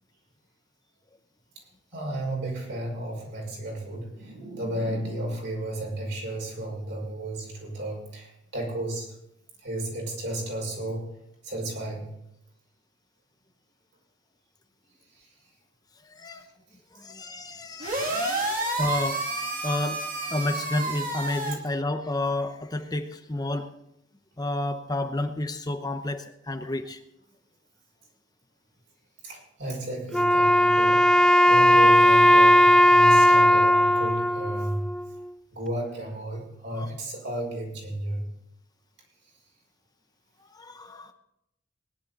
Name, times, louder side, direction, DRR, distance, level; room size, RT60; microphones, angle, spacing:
voice 1, 1.6-9.1 9.6-11.1 11.4-12.1 15.1-15.3 17.7-18.1 18.4-18.5 29.2-31.1 31.4-35.0 35.5-38.3, right 1 dB, 65° right, -1 dB, 5.9 m, -33 dB
voice 2, 16.9-19.2 19.6-20.0 20.3-23.7 24.4-27.0 36.8-36.9 40.5-41.1, left 2 dB, 20° left, 7 dB, 0.8 m, -30 dB
sound 1, 17.8-21.5, right 2 dB, 45° right, 2.5 m, -30 dB
Wind instrument woodwind instrument, 30.1-35.3, equal, 5° left, 0.4 m, -18 dB
19.0 x 11.0 x 4.1 m, 0.80 s
head